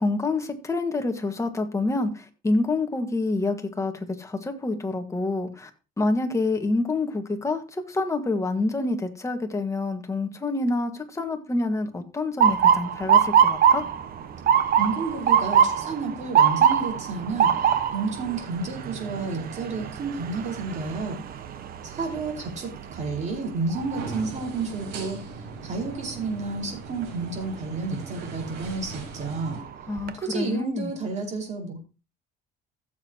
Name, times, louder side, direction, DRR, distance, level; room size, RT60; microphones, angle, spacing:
voice 1, 0.0-3.9 4.2-5.7 6.0-13.8 29.9-30.9, left 2 dB, 15° left, 1.6 m, -27 dB
Motor vehicle (road) / Siren, 12.4-24.3 24.7-25.2 26.0-26.3 28.1-28.4 28.9-29.0 29.4-30.1, right 8 dB, 60° right, 1.2 m, -23 dB
voice 2, 14.8-21.2 21.8-25.2 25.6-29.6 30.1-31.8, right 3 dB, 45° right, 4.9 m, -31 dB
sound 1, 23.7-29.6, right 3 dB, 90° right, 5.0 m, -40 dB
15.0 x 7.5 x 2.9 m
cardioid pair, 110°, 17 cm